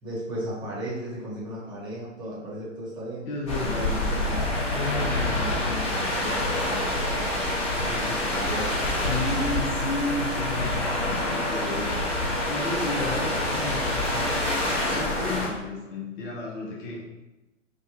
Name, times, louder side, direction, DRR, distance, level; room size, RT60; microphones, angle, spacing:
voice 1, 0.0-3.3 3.6-7.0 8.3-8.8, equal, 10° right, -8 dB, 1.3 m, -35 dB
voice 2, 3.2-3.9 7.6-8.3 8.5-8.7 9.0-14.3 14.7-17.0, left 2 dB, 40° left, -4 dB, 1.1 m, -33 dB
sound 1, 3.5-15.5, left 1 dB, 15° left, 1.1 m, -27 dB
5.0 x 2.4 x 2.9 m, 1.0 s
hypercardioid pair, 130°, 39 cm